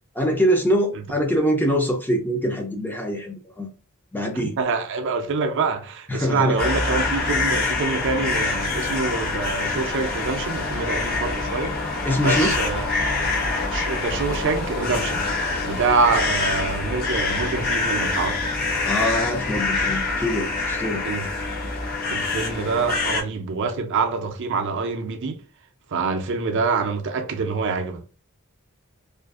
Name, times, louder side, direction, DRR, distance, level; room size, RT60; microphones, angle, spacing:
voice 1, 0.2-3.7 4.1-4.5 6.1-6.6 7.6-7.8 12.0-12.5 18.8-21.0, equal, 10° left, 0.4 m, -23 dB
voice 2, 4.4-11.8 12.2-12.9 13.7-15.2 15.6-18.4 21.0-21.3 22.1-25.4 25.9-28.0, right 4 dB, 55° right, 0.4 m, -25 dB
sound 1, 6.6-23.2, left 3 dB, 45° left, 0.6 m, -25 dB
2.5 x 2.3 x 2.3 m
head